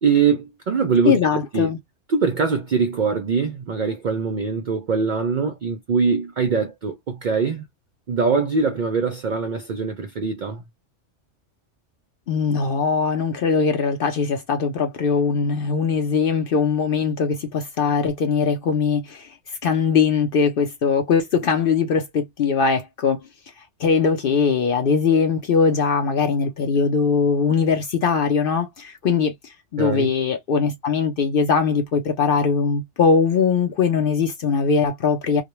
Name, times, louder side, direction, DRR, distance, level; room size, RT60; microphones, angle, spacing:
voice 1, 0.0-1.7 2.1-7.7 8.1-10.6 29.8-30.1, right 5 dB, 65° right, 0.4 m, -22 dB
voice 2, 1.1-1.8 12.3-19.3 19.6-23.2 23.8-35.4, left 5 dB, 60° left, 0.6 m, -21 dB
2.3 x 2.1 x 2.9 m
omnidirectional pair, 1.3 m